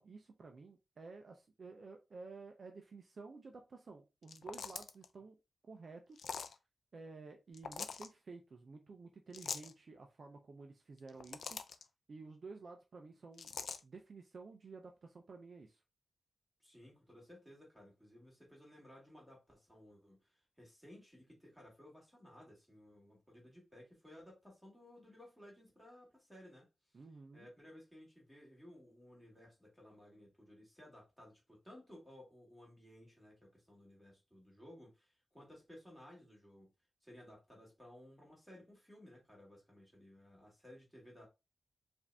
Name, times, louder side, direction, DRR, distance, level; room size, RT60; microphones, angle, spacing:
voice 1, 0.0-5.4 5.6-6.3 6.9-11.8 12.1-13.5 13.8-15.8 26.9-27.5, right 4 dB, 45° right, 0.6 m, -53 dB
sound 1, 4.2-5.1 6.2-6.6 7.5-8.1 9.3-9.7 11.0-11.8 13.4-13.8, left 6 dB, 70° left, 0.4 m, -43 dB
voice 2, 16.6-26.7 27.3-36.7 37.0-41.3, left 1 dB, ahead, 2.1 m, -58 dB
4.9 x 2.7 x 3.4 m
wide cardioid pair, 165°, 0 cm